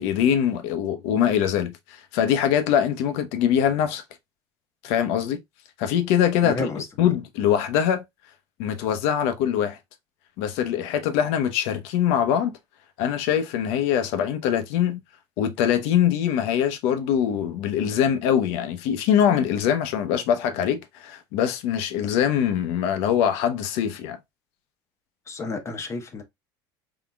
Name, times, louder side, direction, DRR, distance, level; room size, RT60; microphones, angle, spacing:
voice 1, 0.0-4.0 4.8-5.4 5.8-6.7 7.0-8.0 8.6-9.8 10.4-12.5 13.0-15.0 15.4-24.2, left 9 dB, 70° left, 0.8 m, -23 dB
voice 2, 6.4-6.8 25.3-26.2, left 3 dB, 25° left, 1.0 m, -30 dB
3.9 x 3.6 x 2.3 m
supercardioid pair, 120°, 11 cm